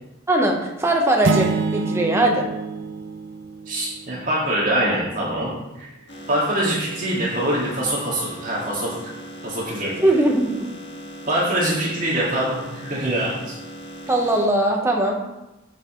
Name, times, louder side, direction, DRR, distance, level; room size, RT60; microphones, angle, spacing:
voice 1, 0.3-2.5 10.0-10.7 14.1-15.2, right 1 dB, 15° right, 0 dB, 1.1 m, -20 dB
sound 1, 1.2-4.0, right 4 dB, 75° right, 0.6 m, -26 dB
voice 2, 3.7-5.5 5.8-5.9 6.3-8.9 9.4-9.9 11.3-13.6, right 1 dB, 45° right, -7 dB, 2.2 m, -24 dB
sound 2, 6.1-14.5, equal, 60° left, 1.7 m, -39 dB
9.2 x 6.5 x 3.2 m, 0.96 s
head